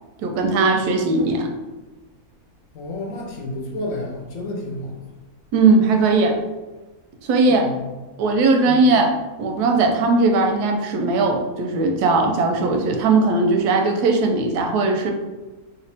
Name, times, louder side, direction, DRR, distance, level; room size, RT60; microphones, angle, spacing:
voice 1, 0.2-1.5 5.5-6.4 7.2-7.7 8.2-9.1 9.4-15.1, right 3 dB, 85° right, 3 dB, 1.1 m, -18 dB
voice 2, 2.7-5.0 7.5-7.9 8.7-9.0, left 2 dB, 65° left, 0 dB, 0.9 m, -31 dB
3.0 x 2.8 x 3.2 m, 1.2 s
omnidirectional pair, 1.6 m